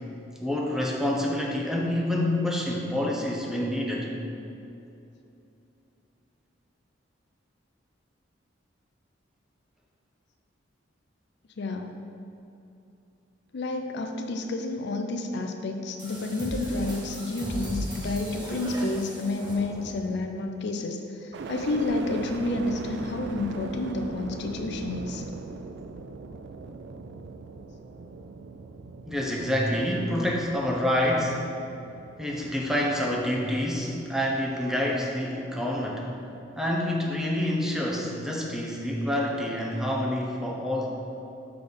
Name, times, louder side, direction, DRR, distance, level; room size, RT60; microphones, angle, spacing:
voice 1, 0.4-4.1 29.1-31.5 32.2-36.1 36.6-40.9, left 1 dB, 5° right, -3 dB, 0.8 m, -27 dB
voice 2, 11.6-12.0 13.5-25.2, left 2 dB, 65° left, 4 dB, 0.5 m, -30 dB
sound 1, 16.0-20.2, equal, 25° right, 1.3 m, -36 dB
sound 2, 21.3-35.3 35.8-36.6, right 4 dB, 65° right, 0.4 m, -41 dB
6.8 x 4.1 x 5.2 m, 2.8 s
head